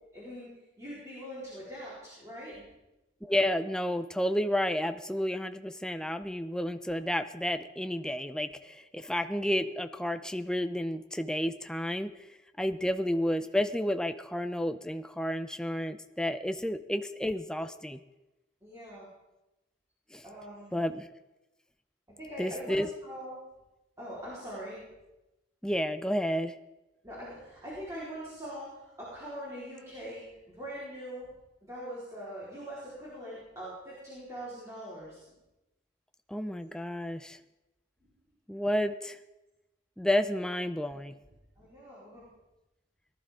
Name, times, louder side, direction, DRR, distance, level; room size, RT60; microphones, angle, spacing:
voice 1, 0.1-0.5 0.8-2.6 12.7-12.8 18.6-19.1 20.2-20.9 22.2-23.4 24.0-24.8 27.0-31.3 31.7-35.2 41.6-42.3, equal, 15° right, -8 dB, 3.9 m, -42 dB
voice 2, 3.2-12.1 12.6-18.0 20.1-20.2 20.7-21.1 22.4-22.9 25.6-26.6 36.3-37.4 38.5-39.2 40.0-41.2, left 1 dB, 5° left, 9 dB, 0.4 m, -31 dB
19.0 x 12.0 x 3.7 m, 1.0 s
head